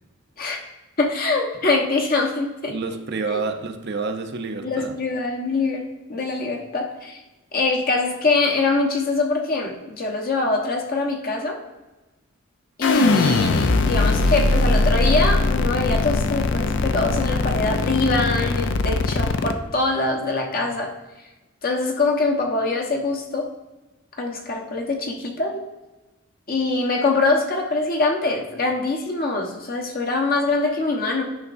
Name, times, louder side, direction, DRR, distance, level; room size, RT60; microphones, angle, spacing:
voice 1, 1.0-2.7 3.3-3.4 4.6-7.2 7.5-11.6 12.8-20.9 21.6-23.5 24.2-25.6 26.5-31.2, left 3 dB, 50° left, 1 dB, 1.1 m, -23 dB
voice 2, 2.7-4.9, right 4 dB, 55° right, 6 dB, 0.6 m, -28 dB
sound 1, 12.8-19.5, left 3 dB, 65° left, 0.5 m, -20 dB
9.5 x 5.8 x 2.6 m, 1.1 s
head